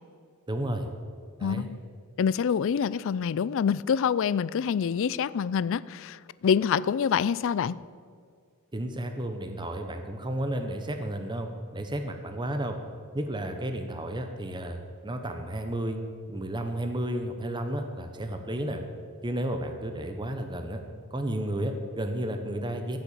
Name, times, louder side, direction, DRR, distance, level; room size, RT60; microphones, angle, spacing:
voice 1, 0.5-0.9 1.4-1.7 8.7-12.8 13.1-16.0 16.3-18.8 19.2-20.8 21.1-23.0, right 1 dB, 20° right, 6 dB, 0.9 m, -32 dB
voice 2, 1.4-1.8 2.2-7.8, left 7 dB, 60° left, 19 dB, 0.4 m, -26 dB
15.0 x 7.0 x 8.6 m, 2.1 s
head